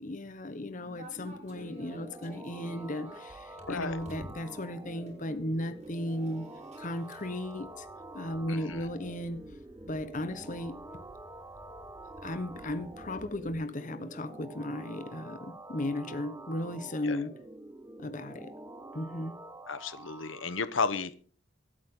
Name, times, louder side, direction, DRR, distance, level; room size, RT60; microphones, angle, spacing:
voice 1, 0.0-6.4 6.8-7.9 8.1-9.4 9.8-10.8 12.2-17.3 18.0-18.5 18.9-19.3, left 1 dB, 40° left, 1.1 m, -35 dB
sound 1, 0.7-20.6, right 2 dB, 15° right, 1.2 m, -47 dB
sound 2, 1.0-13.6, equal, 35° right, 4.4 m, -53 dB
voice 2, 3.7-4.0 8.5-8.9 17.0-17.2 19.7-21.2, left 4 dB, 85° left, 1.0 m, -33 dB
24.5 x 9.0 x 3.8 m
head